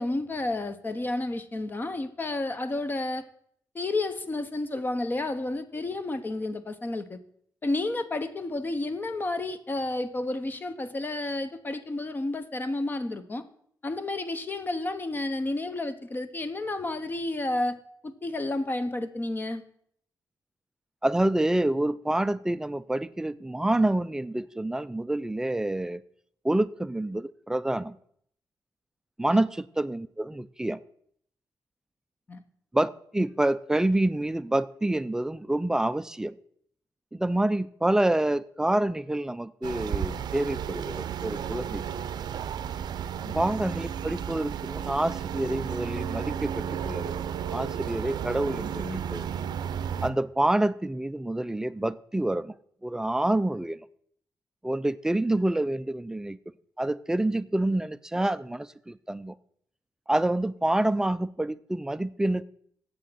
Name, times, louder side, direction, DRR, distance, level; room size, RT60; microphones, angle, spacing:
voice 1, 0.0-3.2 3.7-7.2 7.6-13.5 13.8-17.8 18.0-19.6 29.3-29.4 32.3-32.4 43.2-43.3, left 2 dB, 25° left, 0.8 m, -31 dB
voice 2, 21.0-26.0 26.4-28.0 29.2-30.8 32.7-36.4 37.1-41.8 43.3-47.1 47.5-49.3 50.0-52.6 52.8-53.9 54.6-56.4 56.8-59.4 60.1-62.4, right 1 dB, 10° right, 0.3 m, -27 dB
sound 1, 39.6-50.1, right 8 dB, 80° right, 0.5 m, -33 dB
7.8 x 6.4 x 7.6 m
wide cardioid pair, 135°, 7 cm